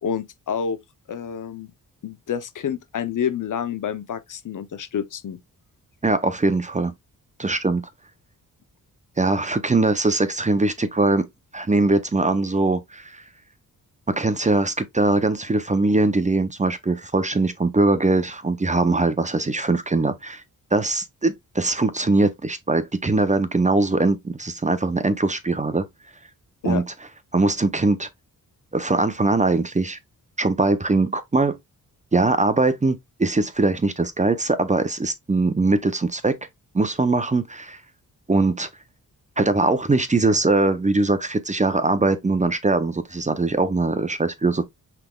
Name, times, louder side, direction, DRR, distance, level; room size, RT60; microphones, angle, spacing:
voice 1, 0.0-0.8 1.1-1.7 2.0-5.4 26.6-26.8, left 8 dB, 55° left, 0.6 m, -28 dB
voice 2, 6.0-6.9 7.4-7.8 9.2-11.3 11.5-13.2 14.1-20.4 20.7-25.9 26.6-26.8 27.3-28.1 28.7-30.0 30.4-31.6 32.1-36.4 36.7-37.8 38.3-38.7 39.4-44.6, right 2 dB, 20° right, 0.6 m, -21 dB
5.7 x 3.4 x 2.3 m
cardioid pair, 80°, 37 cm